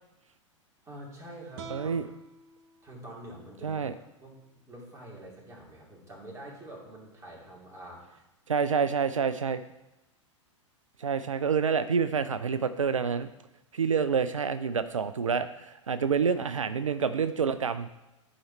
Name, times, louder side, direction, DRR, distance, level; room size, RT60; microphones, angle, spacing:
voice 1, 0.8-2.1 2.8-4.4 4.7-8.2, right 1 dB, 20° right, -3 dB, 2.9 m, -46 dB
sound 1, 1.5-4.7, right 3 dB, 45° right, 1.0 m, -50 dB
voice 2, 1.7-2.1 3.6-3.9 8.5-9.6 11.0-13.3 13.7-17.9, right 6 dB, 85° right, 11 dB, 0.4 m, -28 dB
11.5 x 5.0 x 4.3 m, 0.97 s
figure-of-eight pair, 100°, 16 cm